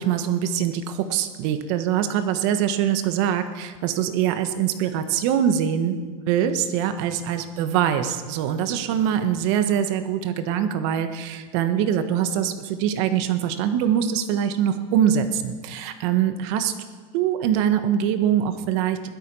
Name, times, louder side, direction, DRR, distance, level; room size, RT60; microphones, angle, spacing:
voice 1, 0.0-16.7 17.1-19.1, right 9 dB, 60° right, 9 dB, 1.3 m, -23 dB
16.5 x 12.0 x 5.5 m, 1.4 s
supercardioid pair, 145°, 17 cm